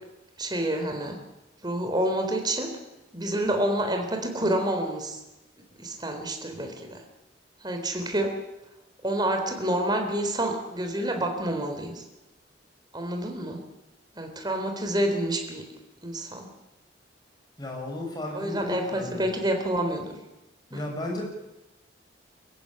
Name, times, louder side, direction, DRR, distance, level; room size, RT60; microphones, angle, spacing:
voice 1, 0.4-1.2 1.6-2.7 3.1-5.2 5.8-7.0 7.6-8.4 9.0-12.0 12.9-13.6 14.1-15.7 16.0-16.5 18.3-20.1 20.7-20.8, right 1 dB, 25° right, 4 dB, 3.9 m, -28 dB
voice 2, 17.6-19.3 20.7-21.2, left 1 dB, 20° left, 0 dB, 6.6 m, -34 dB
24.0 x 15.0 x 9.9 m, 1.0 s
head